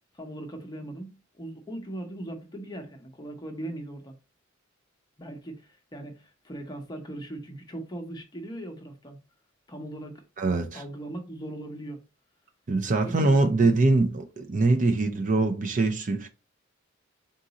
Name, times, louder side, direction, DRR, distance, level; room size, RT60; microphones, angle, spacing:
voice 1, 0.1-4.2 5.2-9.2 9.7-10.2 10.7-12.0 13.0-13.5, right 1 dB, 20° left, 0.7 m, -39 dB
voice 2, 10.4-10.8 12.7-16.3, right 3 dB, 40° right, 0.5 m, -23 dB
3.8 x 2.6 x 4.0 m
head